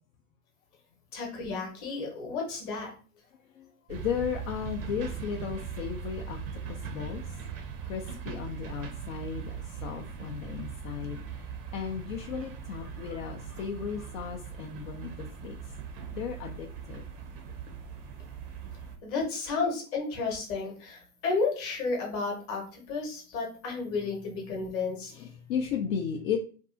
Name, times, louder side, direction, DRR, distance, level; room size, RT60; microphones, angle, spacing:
voice 1, 1.1-2.9 19.0-25.1, left 4 dB, 30° left, 0 dB, 0.9 m, -32 dB
voice 2, 3.6-6.4 6.9-7.2 7.9-9.4 9.8-11.2 11.7-15.1 15.4-15.5 16.1-17.0 25.1-26.4, left 7 dB, 60° left, 3 dB, 0.5 m, -35 dB
sound 1, 3.9-18.9, right 6 dB, 40° right, 0.5 m, -40 dB
2.6 x 2.3 x 2.5 m, 0.40 s
hypercardioid pair, 120°, 46 cm